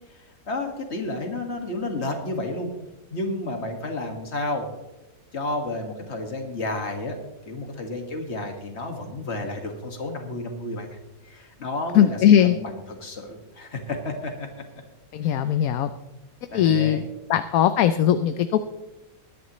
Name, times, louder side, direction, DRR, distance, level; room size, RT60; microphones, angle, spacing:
voice 1, 0.5-2.7 3.1-4.7 5.3-7.2 7.5-11.0 11.2-12.2 12.4-14.5 16.5-17.1, left 2 dB, 45° left, 4 dB, 2.1 m, -31 dB
voice 2, 11.9-12.6 15.1-15.9 16.5-17.0 17.3-18.6, left 10 dB, 70° left, 11 dB, 1.0 m, -19 dB
21.0 x 10.5 x 3.1 m, 0.99 s
omnidirectional pair, 1.6 m